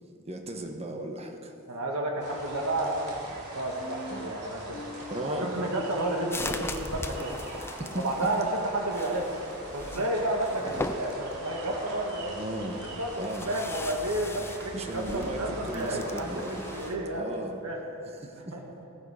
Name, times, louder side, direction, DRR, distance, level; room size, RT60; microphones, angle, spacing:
voice 1, 0.2-1.5 4.1-4.3 5.1-5.7 7.8-8.3 12.4-12.8 13.2-13.5 14.7-16.7 17.1-17.6 18.2-18.5, right 1 dB, 30° right, 4 dB, 1.3 m, -36 dB
voice 2, 1.7-3.1 3.5-7.3 7.9-8.5 8.7-9.3 9.7-12.4 13.0-17.3 17.6-17.8 18.5-18.6, right 1 dB, 90° right, 0 dB, 1.7 m, -31 dB
sound 1, 2.2-16.9, right 1 dB, 50° right, 3.5 m, -42 dB
sound 2, 3.8-4.3 4.7-5.2 5.5-6.3 6.7-11.3, left 1 dB, 45° left, 2.3 m, -45 dB
sound 3, 6.3-17.0, left 2 dB, 10° left, 0.5 m, -40 dB
16.5 x 11.0 x 5.0 m, 2.8 s
head